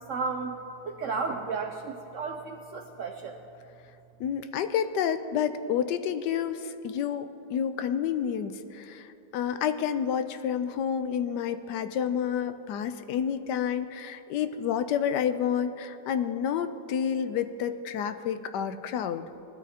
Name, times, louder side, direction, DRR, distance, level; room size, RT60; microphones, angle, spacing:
voice 1, 0.1-0.5 0.9-3.3, right 4 dB, 70° right, 5 dB, 0.7 m, -33 dB
voice 2, 4.2-9.0 9.3-19.2, left 8 dB, 75° left, 10 dB, 1.2 m, -29 dB
19.0 x 12.5 x 2.8 m, 2.9 s
omnidirectional pair, 1.9 m